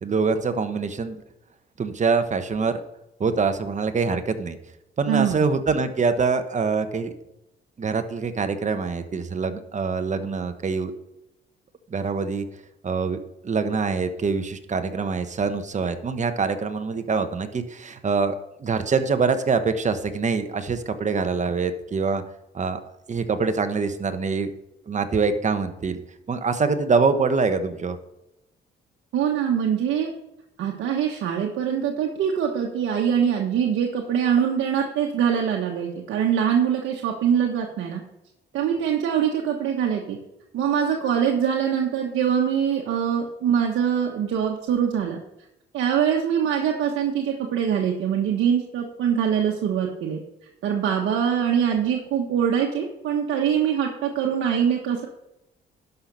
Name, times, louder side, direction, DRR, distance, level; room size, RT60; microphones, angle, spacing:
voice 1, 0.0-1.2 1.8-2.8 3.2-4.6 5.0-7.1 7.8-10.9 11.9-12.4 12.8-18.3 18.6-22.2 22.5-22.8 23.1-24.5 24.9-26.0 26.3-28.0, right 4 dB, 35° right, 9 dB, 1.2 m, -24 dB
voice 2, 5.1-5.5 29.1-30.1 30.6-38.0 38.5-40.2 40.5-45.2 45.7-50.2 50.6-55.1, right 8 dB, 80° right, 0 dB, 1.3 m, -23 dB
11.5 x 5.9 x 5.4 m, 0.87 s
cardioid pair, 90°, 20 cm